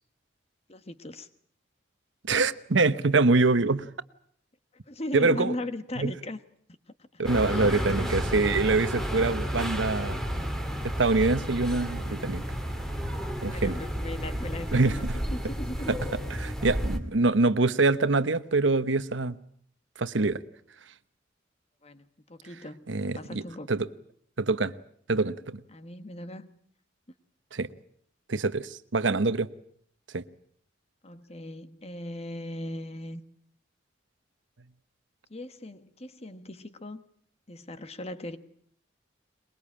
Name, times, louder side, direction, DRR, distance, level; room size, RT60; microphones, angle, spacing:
voice 1, 0.7-1.3 4.9-6.4 7.1-7.2 7.5-8.1 13.5-16.0 21.8-23.7 25.7-26.6 31.0-33.2 35.3-37.0 37.5-38.4, left 1 dB, 35° left, 1.3 m, -38 dB
voice 2, 2.3-3.9 5.1-5.5 6.0-6.1 7.2-10.2 10.8-12.5 13.4-13.8 14.7-15.1 15.9-16.0 16.4-19.4 20.0-20.4 22.9-23.4 23.7-23.9 24.4-24.7 25.1-25.6 27.5-27.7 28.3-29.5 30.1-30.2, right 3 dB, 80° right, 1.0 m, -25 dB
sound 1, 7.2-17.0, equal, ahead, 2.5 m, -31 dB
23.0 x 22.0 x 8.7 m
head